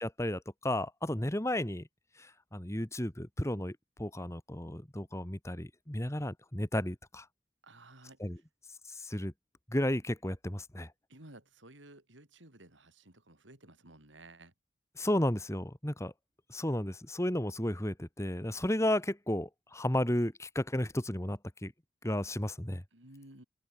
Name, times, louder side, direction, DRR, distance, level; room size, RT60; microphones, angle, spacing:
voice 1, 0.0-1.9 2.2-7.3 8.2-8.4 8.9-9.3 9.7-10.9 15.0-16.1 16.5-21.7 22.0-22.8, left 1 dB, 15° left, 1.8 m, -33 dB
voice 2, 7.6-8.2 11.1-14.5 22.9-23.4, right 2 dB, 85° right, 6.0 m, -55 dB
open air
head